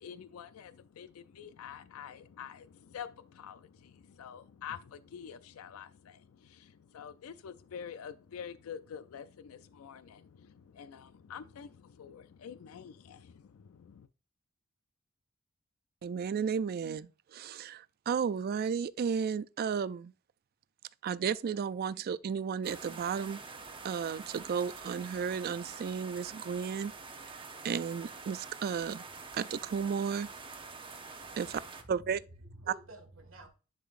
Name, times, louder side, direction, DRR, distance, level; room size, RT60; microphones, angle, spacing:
voice 1, 0.0-14.1, left 7 dB, 85° left, 0.4 m, -47 dB
voice 2, 16.0-20.1 21.0-23.4 23.8-26.9 27.6-29.0 29.3-30.3 31.4-31.6 31.9-32.2, right 6 dB, 45° right, 0.3 m, -33 dB
sound 1, 22.6-31.8, right 4 dB, 25° right, 0.8 m, -46 dB
voice 3, 31.4-33.5, right 1 dB, 70° right, 1.8 m, -52 dB
10.0 x 3.8 x 2.5 m
head